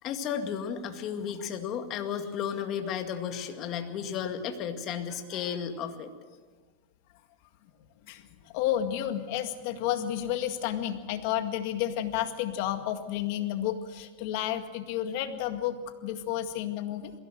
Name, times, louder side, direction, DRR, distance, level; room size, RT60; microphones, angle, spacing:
voice 1, 0.0-6.1, left 8 dB, 40° left, 6 dB, 2.1 m, -33 dB
voice 2, 8.1-17.1, left 11 dB, 60° left, 7 dB, 2.0 m, -31 dB
22.0 x 16.5 x 7.8 m, 1.5 s
supercardioid pair, 135°, 0 cm